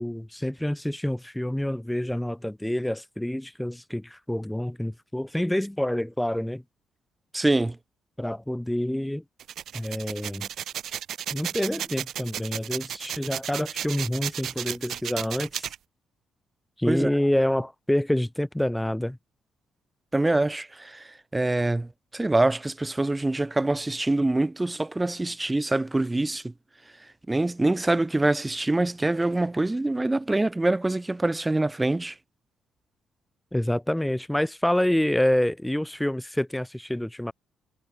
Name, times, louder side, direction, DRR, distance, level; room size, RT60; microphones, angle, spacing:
voice 1, 0.0-6.6 8.2-9.2 9.7-10.5 11.3-15.7 16.8-19.2 33.5-37.3, left 1 dB, 5° left, 1.1 m, -27 dB
voice 2, 7.3-7.8 16.9-17.1 20.1-26.5 27.3-32.1, right 2 dB, 15° right, 0.7 m, -25 dB
sound 1, 9.4-15.8, right 10 dB, 70° right, 0.5 m, -34 dB
cardioid pair, 90°, 0 cm